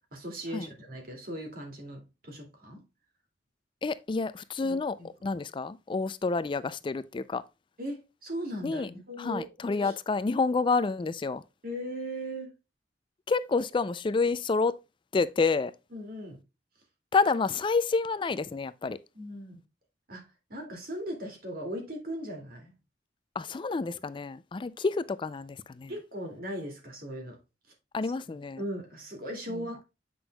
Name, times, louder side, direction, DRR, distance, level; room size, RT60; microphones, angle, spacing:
voice 1, 0.1-2.8 4.6-5.1 7.8-9.5 9.8-10.0 11.6-12.5 15.9-16.4 19.1-19.6 20.1-22.7 25.9-27.4 28.0-29.8, equal, 55° right, 2.4 m, -38 dB
voice 2, 3.8-5.0 5.2-7.4 8.6-8.9 9.2-11.4 13.3-14.8 15.1-15.7 17.1-19.0 23.4-25.9 27.9-28.6, left 4 dB, 30° left, 0.3 m, -28 dB
7.8 x 6.0 x 2.2 m
head